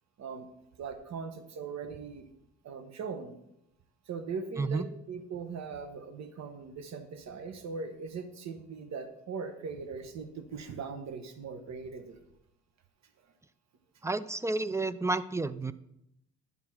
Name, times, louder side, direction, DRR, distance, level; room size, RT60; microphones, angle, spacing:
voice 1, 0.2-0.5 0.8-2.3 2.6-3.3 4.1-12.2, right 5 dB, 65° right, 7 dB, 1.2 m, -40 dB
voice 2, 14.0-15.7, right 3 dB, 10° right, 14 dB, 0.3 m, -31 dB
9.6 x 3.9 x 5.9 m, 0.81 s
cardioid pair, 90°, 30 cm